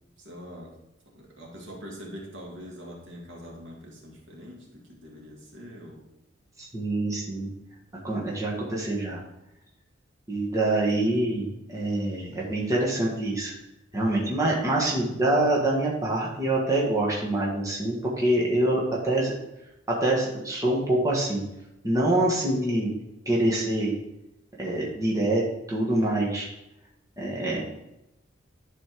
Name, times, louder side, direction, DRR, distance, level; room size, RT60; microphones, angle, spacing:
voice 1, 0.2-0.8 1.1-6.1 10.9-11.3 14.7-15.0, equal, 70° right, -2 dB, 2.2 m, -44 dB
voice 2, 6.6-7.5 8.0-9.2 10.3-13.5 13.9-19.3 19.9-21.4 21.8-22.9 23.3-23.9 24.6-25.4 25.7-26.5 27.2-27.8, right 1 dB, 15° right, -4 dB, 1.6 m, -25 dB
11.0 x 4.3 x 4.6 m, 0.91 s
head